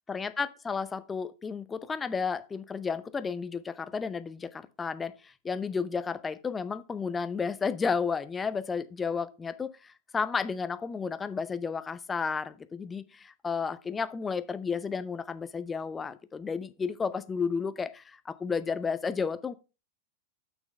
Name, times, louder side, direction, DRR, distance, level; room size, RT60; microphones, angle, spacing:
voice 1, 0.1-19.5, left 5 dB, 15° left, 0.6 m, -32 dB
10.0 x 6.1 x 3.3 m
figure-of-eight pair, 90°, 0 cm